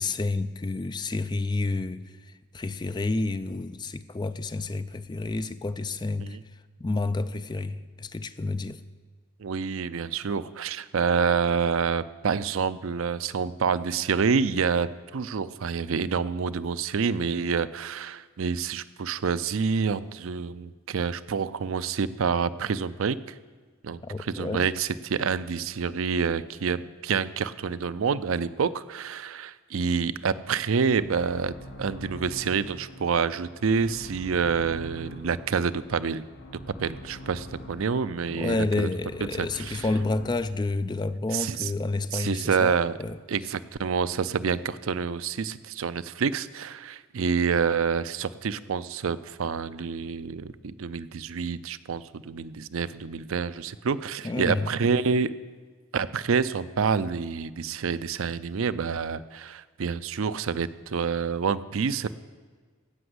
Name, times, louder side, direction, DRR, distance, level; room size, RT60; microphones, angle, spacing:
voice 1, 0.0-2.1 2.5-6.4 6.8-8.8 24.0-24.7 38.3-43.2 54.2-54.7, left 3 dB, 20° left, 0.3 m, -29 dB
voice 2, 9.4-14.9 15.1-23.2 23.8-36.2 36.8-38.9 39.4-39.8 41.3-41.7 42.1-42.9 43.3-55.3 55.9-62.1, right 5 dB, 70° right, 0.5 m, -27 dB
sound 1, 30.3-40.3, left 1 dB, 75° left, 2.5 m, -44 dB
16.0 x 6.0 x 7.9 m
head